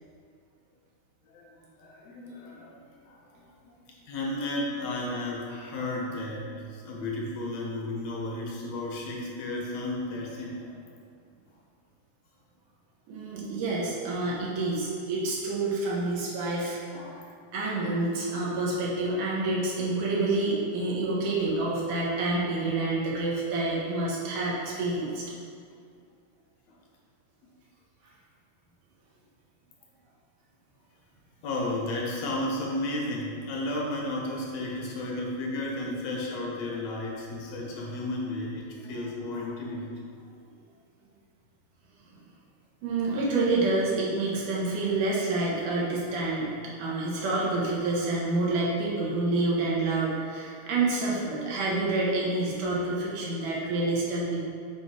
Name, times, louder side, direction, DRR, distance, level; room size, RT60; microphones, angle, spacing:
voice 1, 1.8-3.8 4.1-10.7 16.9-17.2 26.7-26.8 31.4-39.9, left 1 dB, 65° left, -3 dB, 1.9 m, -33 dB
voice 2, 13.1-16.8 17.5-25.3 42.8-46.5 46.8-54.4, right 2 dB, 90° right, -6 dB, 2.8 m, -28 dB
7.0 x 3.4 x 4.8 m, 2.3 s
omnidirectional pair, 3.6 m